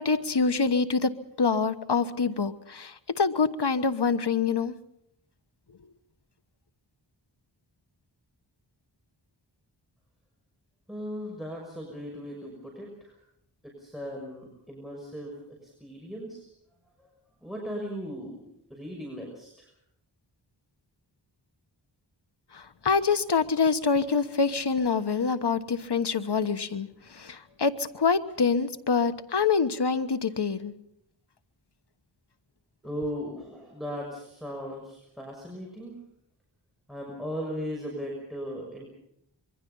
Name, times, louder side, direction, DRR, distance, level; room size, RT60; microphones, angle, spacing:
voice 1, 0.0-4.7 22.5-30.7, left 5 dB, 60° left, 10 dB, 1.3 m, -26 dB
voice 2, 10.9-13.2 13.6-16.5 17.0-17.1 17.4-18.4 18.7-19.7 32.8-36.0 36.9-38.9, equal, ahead, 0 dB, 6.2 m, -37 dB
26.0 x 23.0 x 5.6 m, 0.73 s
wide cardioid pair, 55°, 45 cm